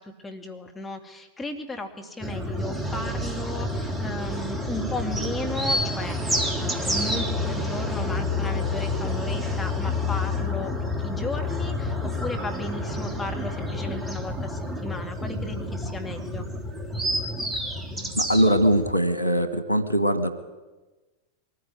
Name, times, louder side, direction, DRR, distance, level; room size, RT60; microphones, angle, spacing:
voice 1, 0.0-16.5, left 2 dB, 10° left, 2 dB, 2.2 m, -35 dB
sound 1, 2.2-18.9, left 1 dB, 10° right, 2.6 m, -29 dB
voice 2, 18.1-20.3, equal, 85° right, 12 dB, 1.5 m, -21 dB
22.5 x 14.5 x 9.8 m, 1.2 s
figure-of-eight pair, 90°, 0 cm